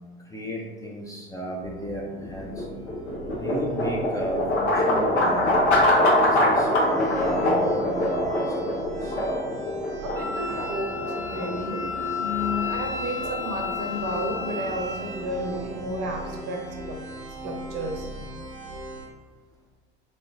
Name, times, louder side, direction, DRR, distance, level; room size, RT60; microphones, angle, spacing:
voice 1, 0.3-2.7 3.3-5.5 6.2-9.2, right 1 dB, 10° left, -2 dB, 0.4 m, -33 dB
sound 1, 1.6-19.1, equal, 80° right, 1.0 m, -39 dB
sound 2, 2.2-16.3, left 1 dB, 85° left, 0.9 m, -25 dB
voice 2, 10.0-11.9 12.1-17.0 17.4-18.1, equal, 45° right, 2 dB, 0.8 m, -32 dB
Wind instrument woodwind instrument, 10.1-15.3, left 5 dB, 45° left, 1.0 m, -33 dB
3.7 x 3.3 x 2.5 m, 1.5 s
figure-of-eight pair, 70°, 33 cm